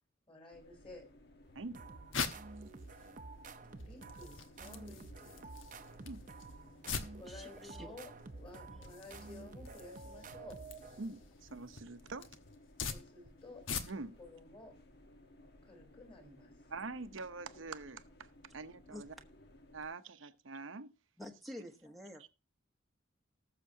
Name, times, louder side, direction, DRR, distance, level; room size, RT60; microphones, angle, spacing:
voice 1, 0.3-1.1 3.8-5.6 7.2-10.6 12.9-13.7 14.2-14.8 15.6-16.5, left 2 dB, 30° left, 3.7 m, -54 dB
sound 1, 0.5-19.9, left 1 dB, 55° left, 1.2 m, -60 dB
sound 2, 1.5-14.2, left 5 dB, 80° left, 1.1 m, -45 dB
sound 3, 1.7-11.3, right 3 dB, 40° right, 0.7 m, -51 dB
voice 2, 7.3-8.0 8.7-8.9 18.9-19.0 21.2-22.3, left 1 dB, ahead, 1.0 m, -49 dB
voice 3, 11.0-12.3 13.9-14.2 16.7-18.3 18.5-19.1 19.7-20.9, right 3 dB, 75° right, 0.8 m, -45 dB
19.0 x 6.7 x 2.8 m
head